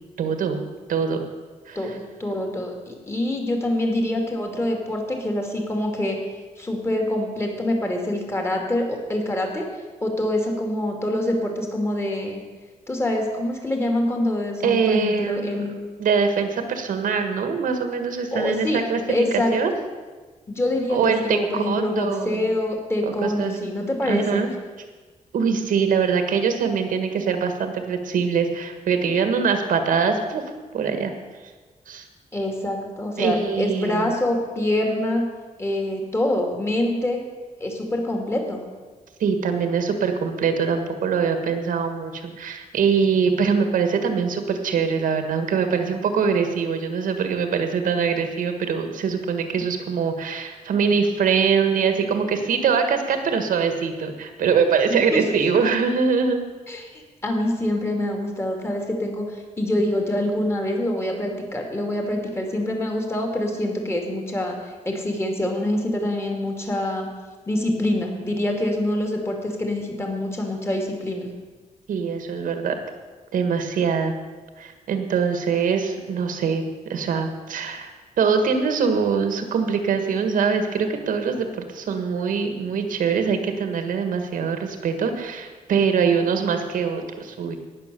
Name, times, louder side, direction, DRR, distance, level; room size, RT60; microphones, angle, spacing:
voice 1, 0.2-0.6 0.9-1.3 1.7-1.8 14.6-15.7 16.0-19.7 20.9-22.5 23.0-23.6 24.0-24.5 25.3-30.4 30.7-31.1 31.9-32.1 33.2-34.1 39.2-56.4 71.9-72.7 73.3-74.1 74.6-87.6, right 6 dB, 90° right, 7 dB, 1.6 m, -23 dB
voice 2, 2.2-6.2 6.6-9.7 10.0-12.4 12.9-15.9 18.3-18.8 19.1-19.5 20.5-24.5 32.3-35.2 35.6-37.2 37.6-38.6 54.9-55.4 56.7-64.6 64.8-67.1 67.5-71.3, left 1 dB, 20° left, 2 dB, 2.4 m, -25 dB
18.0 x 6.6 x 6.8 m, 1.4 s
wide cardioid pair, 145°, 13 cm